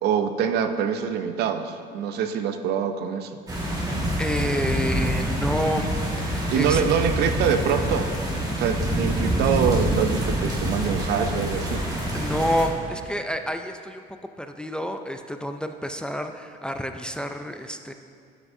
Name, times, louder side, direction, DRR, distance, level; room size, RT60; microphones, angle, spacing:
voice 1, 0.0-3.3 6.5-8.1 8.6-11.8, right 7 dB, 75° right, 8 dB, 0.5 m, -24 dB
sound 1, 3.5-12.7, equal, 20° right, 1.7 m, -26 dB
voice 2, 3.8-5.9 6.2-6.8 12.1-14.1 14.4-17.9, equal, 5° left, 6 dB, 0.3 m, -29 dB
12.5 x 6.0 x 2.7 m, 2.2 s
cardioid pair, 110°, 17 cm